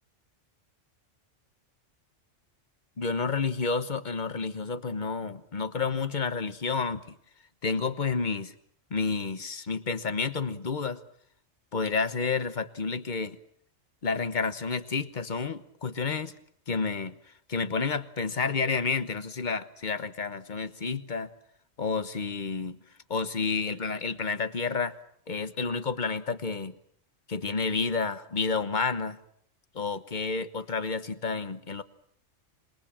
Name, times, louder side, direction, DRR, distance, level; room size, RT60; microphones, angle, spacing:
voice 1, 3.0-7.0 7.6-8.5 8.9-11.0 11.7-13.4 14.0-16.3 16.7-17.1 17.5-21.3 21.8-22.8 23.1-24.9 25.3-26.7 27.3-29.2 29.7-31.8, left 4 dB, 40° left, 12 dB, 1.2 m, -30 dB
26.5 x 21.5 x 7.4 m, 0.68 s
omnidirectional pair, 1.3 m